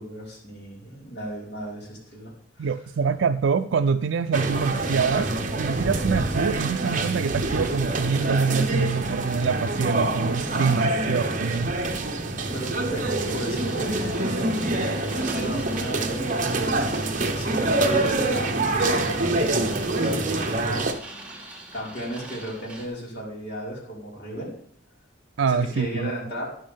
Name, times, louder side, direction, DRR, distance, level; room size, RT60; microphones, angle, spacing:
voice 1, 0.0-2.7 10.9-11.1 12.4-17.1 17.3-24.5 25.5-26.5, equal, 60° left, -4 dB, 4.9 m, -35 dB
voice 2, 2.6-5.3 5.6-11.8 25.4-26.1, right 5 dB, 80° right, 9 dB, 0.4 m, -25 dB
sound 1, 4.3-20.9, right 2 dB, 45° right, 1.2 m, -26 dB
sound 2, 13.5-22.9, right 2 dB, 5° right, 2.4 m, -43 dB
13.0 x 10.5 x 3.6 m, 0.64 s
head